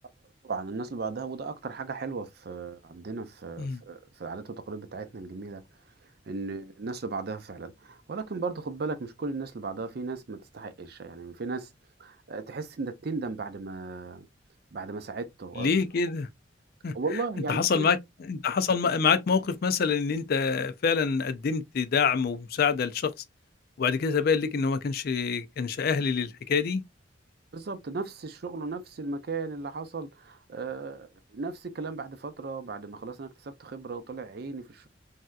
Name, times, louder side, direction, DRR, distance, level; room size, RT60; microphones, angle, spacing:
voice 1, 0.4-11.7 12.0-14.3 14.7-15.9 16.9-17.9 27.5-34.9, right 4 dB, 55° right, 0.5 m, -36 dB
voice 2, 15.6-16.3 16.8-16.9 17.5-18.0 18.3-23.1 23.8-26.8, left 5 dB, 55° left, 0.4 m, -26 dB
3.3 x 2.7 x 2.3 m
head